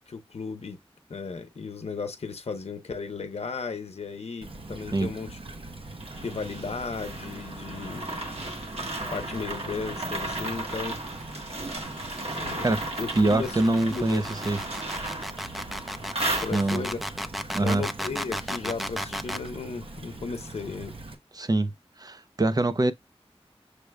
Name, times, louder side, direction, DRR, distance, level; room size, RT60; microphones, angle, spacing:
voice 1, 0.1-0.8 1.1-5.4 6.2-8.2 8.8-11.0 12.3-12.7 13.0-13.6 13.9-14.2 16.4-17.0 17.6-21.0, left 4 dB, 85° left, 0.7 m, -35 dB
Stream / Trickle dribble, 4.4-21.2, right 2 dB, 60° right, 1.0 m, -42 dB
sound 1, 6.0-17.0, right 2 dB, 80° right, 1.4 m, -35 dB
sound 2, 10.2-19.5, equal, ahead, 0.6 m, -35 dB
voice 2, 13.2-14.6 16.5-16.8 17.5-17.9 21.3-21.7 22.0-22.9, right 2 dB, 40° right, 0.7 m, -24 dB
6.6 x 2.3 x 3.3 m
wide cardioid pair, 65°, 10 cm